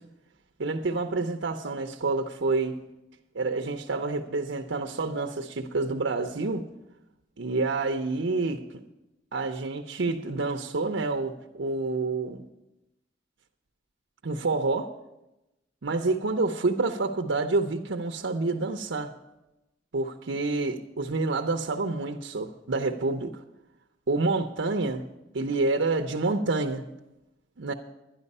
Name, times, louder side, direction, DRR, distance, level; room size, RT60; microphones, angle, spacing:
voice 1, 0.6-2.8 3.3-6.7 7.4-8.6 9.3-12.4 14.2-14.9 15.8-19.1 19.9-23.4 24.1-25.1 25.3-26.8 27.6-27.7, right 3 dB, 75° right, 4 dB, 0.7 m, -28 dB
12.0 x 10.5 x 5.4 m, 0.95 s
head